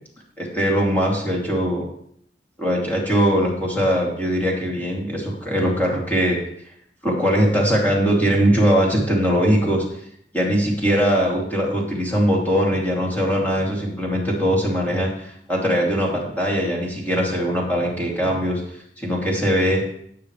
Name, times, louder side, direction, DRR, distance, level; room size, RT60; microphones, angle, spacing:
voice 1, 0.4-1.9 2.6-6.4 7.0-9.8 10.3-18.6 19.0-19.8, equal, 10° left, -3 dB, 2.8 m, -21 dB
17.5 x 6.8 x 3.3 m, 0.68 s
head